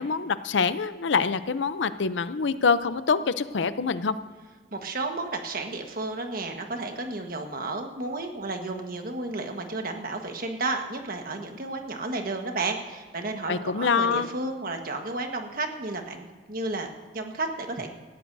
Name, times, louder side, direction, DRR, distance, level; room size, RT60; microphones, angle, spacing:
voice 1, 0.0-4.2 13.5-14.3, left 5 dB, 75° left, 13 dB, 0.6 m, -25 dB
voice 2, 4.7-16.9 17.1-17.9, right 2 dB, 50° right, 4 dB, 1.4 m, -32 dB
18.0 x 14.0 x 2.7 m, 1.4 s
head